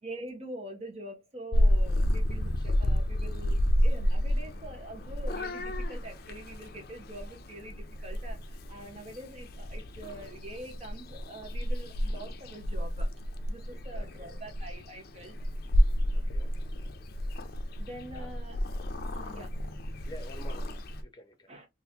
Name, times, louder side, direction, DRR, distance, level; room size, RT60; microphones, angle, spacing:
voice 1, 0.0-13.1 13.5-15.4 17.8-18.6 19.1-19.6 21.5-21.7, right 1 dB, 35° right, 0.9 m, -45 dB
Purr / Meow, 1.5-21.0, equal, 55° left, 0.5 m, -30 dB
voice 2, 13.7-14.4 16.1-16.5 18.1-18.3 19.3-19.4 20.1-21.5, left 1 dB, 25° left, 0.7 m, -50 dB
3.8 x 2.5 x 2.8 m
head